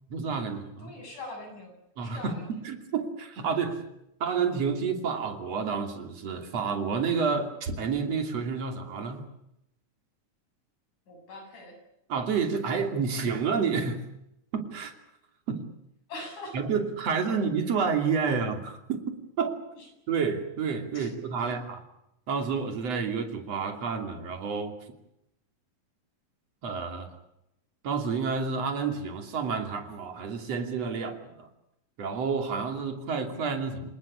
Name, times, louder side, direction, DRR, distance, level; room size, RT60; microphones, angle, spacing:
voice 1, 0.1-1.0 2.0-3.9 4.2-9.3 12.1-14.0 14.5-14.9 15.5-15.7 16.5-19.0 19.4-19.6 20.1-21.8 22.3-24.8 26.6-27.1 27.8-31.5 32.0-33.9, right 5 dB, 55° right, 5 dB, 3.9 m, -29 dB
voice 2, 0.8-1.7 2.0-2.5 11.1-11.8 16.1-16.6 17.3-17.4 19.7-19.9 20.9-21.1 21.4-21.6, left 2 dB, 90° left, 3 dB, 9.0 m, -42 dB
27.5 x 19.5 x 8.7 m, 0.82 s
omnidirectional pair, 3.4 m